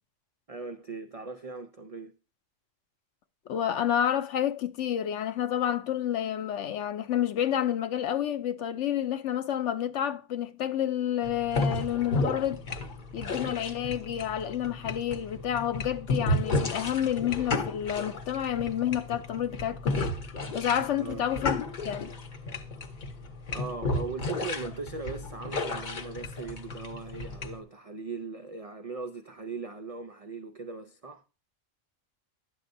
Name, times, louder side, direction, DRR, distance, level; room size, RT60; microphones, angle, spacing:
voice 1, 0.5-2.1 21.0-21.3 23.5-31.2, right 4 dB, 60° right, 0.3 m, -39 dB
voice 2, 3.5-12.6 13.1-20.1 20.5-22.1, left 10 dB, 70° left, 0.9 m, -29 dB
sound 1, 11.2-27.6, left 2 dB, 45° left, 0.8 m, -33 dB
10.5 x 7.8 x 2.6 m
omnidirectional pair, 1.3 m